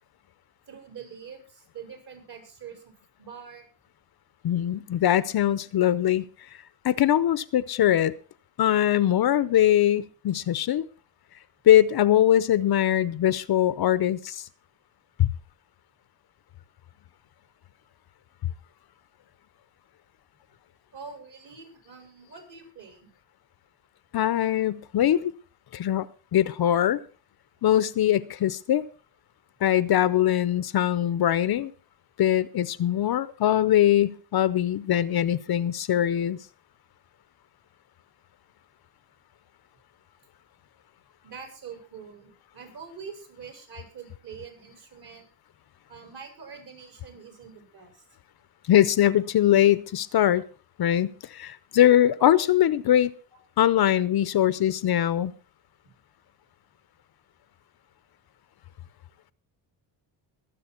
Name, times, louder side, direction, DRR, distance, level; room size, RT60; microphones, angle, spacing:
voice 1, 0.7-2.9 3.2-3.7 20.9-23.1 41.2-45.3 45.9-48.0, right 6 dB, 55° right, 4 dB, 5.9 m, -44 dB
voice 2, 4.4-6.3 6.8-8.1 8.6-10.9 11.7-14.5 15.2-15.3 24.1-25.3 25.7-26.1 26.3-27.0 27.6-28.9 29.6-31.7 32.2-36.4 48.7-50.4 50.8-53.1 53.6-55.3, left 11 dB, 55° left, 17 dB, 0.7 m, -22 dB
22.0 x 7.7 x 4.4 m, 0.38 s
cardioid pair, 90°, 46 cm